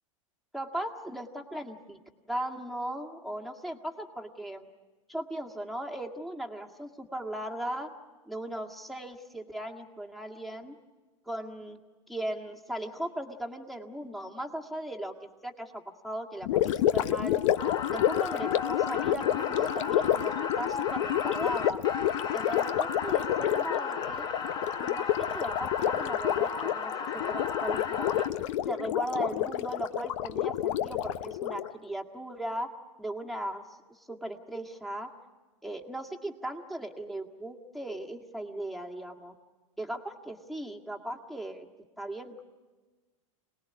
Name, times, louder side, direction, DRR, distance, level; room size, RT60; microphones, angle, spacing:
voice 1, 0.5-2.0 2.3-4.7 5.1-7.9 8.3-10.8 11.3-11.8 12.1-15.1 15.4-17.4 17.9-21.8 22.3-24.3 24.8-28.3 28.7-32.7 33.0-35.1 35.6-39.3 39.8-41.7 42.0-42.4, right 1 dB, ahead, 2 dB, 1.8 m, -37 dB
Gurgling, 16.4-31.7, left 12 dB, 70° left, 0.8 m, -29 dB
sound 1, 17.6-28.3, left 5 dB, 25° left, 1.3 m, -35 dB
26.5 x 19.5 x 9.5 m, 1.3 s
supercardioid pair, 130°, 17 cm